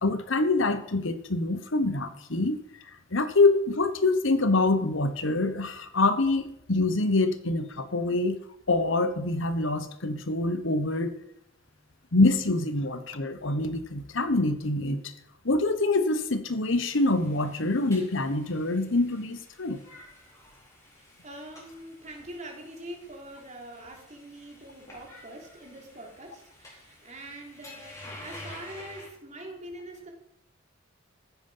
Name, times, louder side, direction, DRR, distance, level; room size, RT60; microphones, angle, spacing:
voice 1, 0.0-2.6 3.1-8.4 8.7-11.1 12.1-15.1 15.4-19.8, left 2 dB, 65° left, 10 dB, 1.2 m, -25 dB
sound 1, 16.9-29.1, left 1 dB, 15° left, 4.4 m, -50 dB
voice 2, 21.2-30.1, right 1 dB, 35° right, 1 dB, 3.3 m, -44 dB
15.0 x 9.7 x 5.6 m, 0.77 s
head